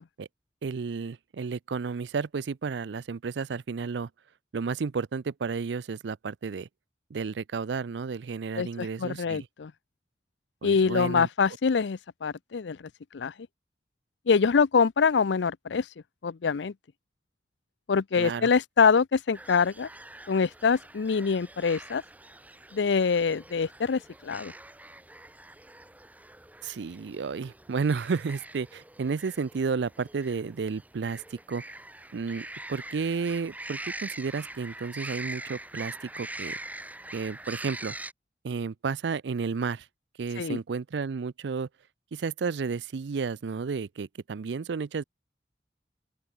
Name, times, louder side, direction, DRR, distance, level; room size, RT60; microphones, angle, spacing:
voice 1, 0.6-4.1 4.5-6.7 7.1-9.5 10.6-11.3 18.1-18.5 26.6-31.6 32.1-36.6 37.1-37.9 38.4-39.9 40.2-41.7 42.1-45.0, right 5 dB, 85° right, 0.5 m, -32 dB
voice 2, 8.6-9.7 10.6-13.3 14.3-15.9 16.2-16.7 17.9-19.9 20.3-22.0 22.7-24.5 40.4-40.6, left 5 dB, 90° left, 0.5 m, -25 dB
sound 1, 19.3-38.1, right 1 dB, 10° right, 2.8 m, -43 dB
open air
head